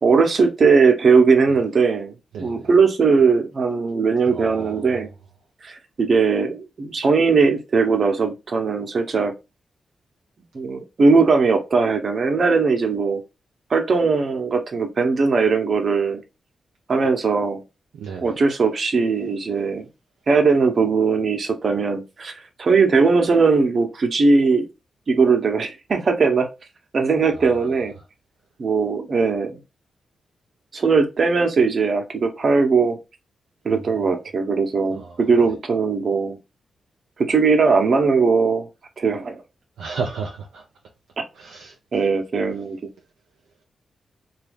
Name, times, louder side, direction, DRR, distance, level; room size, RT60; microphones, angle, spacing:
voice 1, 0.0-5.1 5.6-9.3 10.5-13.2 13.7-16.2 16.9-17.6 18.2-19.9 20.3-22.3 22.6-24.7 25.1-26.5 26.9-27.9 28.6-29.6 30.7-33.0 33.6-36.4 37.2-38.7 39.0-39.4 41.9-42.8, right 4 dB, 60° right, 0.8 m, -19 dB
voice 2, 2.3-2.7 4.3-4.9 17.9-18.4 27.4-27.7 33.7-33.8 35.0-35.2 39.8-40.6 41.4-41.7, right 5 dB, 85° right, 0.5 m, -33 dB
2.7 x 2.4 x 3.4 m
supercardioid pair, 45°, 0 cm